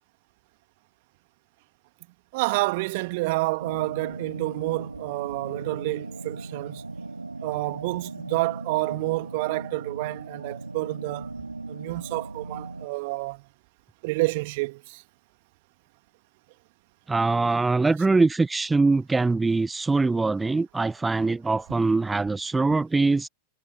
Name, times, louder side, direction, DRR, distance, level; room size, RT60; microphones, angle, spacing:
voice 1, 2.3-6.8 7.4-11.3 11.7-13.4 14.0-15.0, right 24 dB, 50° right, 2.1 m, -29 dB
sound 1, 3.6-12.9, right 3 dB, 80° right, 7.8 m, -38 dB
voice 2, 17.1-23.3, right 3 dB, 10° right, 0.9 m, -23 dB
figure-of-eight pair, 90°, 0 cm